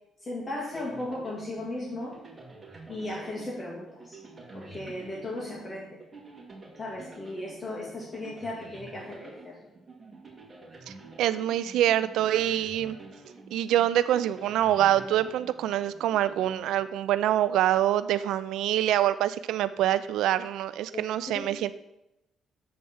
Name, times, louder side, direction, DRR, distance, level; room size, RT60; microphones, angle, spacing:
voice 1, 0.2-2.2 2.9-4.2 4.5-6.0 6.8-9.6 20.9-21.5, left 1 dB, 30° left, -4 dB, 2.2 m, -36 dB
sound 1, 0.7-17.3, right 3 dB, 25° right, 2.1 m, -48 dB
voice 2, 10.9-13.0 13.5-21.7, right 12 dB, 85° right, 15 dB, 0.3 m, -25 dB
7.4 x 4.6 x 7.0 m, 0.87 s
cardioid pair, 90°, 0 cm